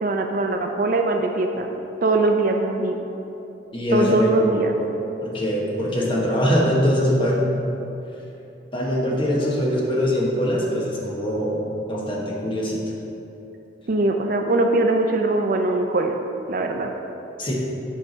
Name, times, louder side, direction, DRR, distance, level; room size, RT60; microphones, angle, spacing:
voice 1, 0.0-1.7 2.0-3.0 3.9-4.7 13.9-16.1 16.5-16.9, right 2 dB, 45° right, 4 dB, 0.5 m, -21 dB
voice 2, 3.7-4.3 4.8-4.9 5.2-7.5 8.7-12.8 17.4-17.5, equal, 25° left, -3 dB, 1.2 m, -22 dB
7.9 x 4.8 x 5.2 m, 3.0 s
head